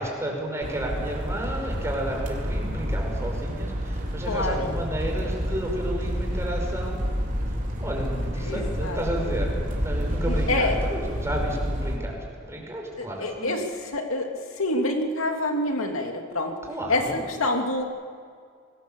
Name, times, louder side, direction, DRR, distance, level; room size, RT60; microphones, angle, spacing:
voice 1, 0.0-7.0 7.8-9.5 9.8-12.2 12.4-13.6 16.7-17.2, right 1 dB, 15° right, 0 dB, 5.7 m, -32 dB
sound 1, 0.6-12.0, equal, 40° right, 4.2 m, -29 dB
voice 2, 4.3-4.7 8.4-9.0 10.3-10.7 13.0-14.3 14.5-16.5 16.9-17.0 17.4-17.8, left 2 dB, 70° left, 3 dB, 2.8 m, -27 dB
28.0 x 20.0 x 7.2 m, 2.3 s
head